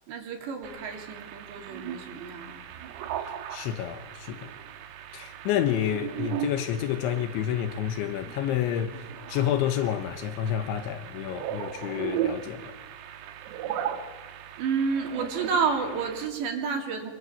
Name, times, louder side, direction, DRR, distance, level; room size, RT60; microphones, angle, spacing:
voice 1, 0.1-2.5 14.6-17.1, right 5 dB, 60° right, 4.9 m, -30 dB
sound 1, 0.6-16.3, right 10 dB, 90° right, 4.4 m, -37 dB
voice 2, 3.5-4.5 5.1-9.0 9.3-12.7, left 10 dB, 75° left, 3.2 m, -29 dB
28.5 x 22.5 x 8.5 m
omnidirectional pair, 6.0 m